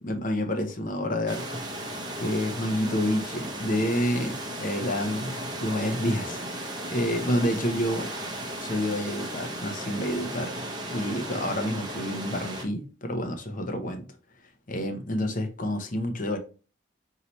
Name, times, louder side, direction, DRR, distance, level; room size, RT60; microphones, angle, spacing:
voice 1, 0.0-1.5 2.2-8.1 8.6-10.5 10.9-14.1 14.7-16.4, left 1 dB, 40° left, 0.7 m, -29 dB
sound 1, 1.3-12.6, right 1 dB, 20° right, 0.7 m, -35 dB
5.6 x 2.8 x 3.0 m
head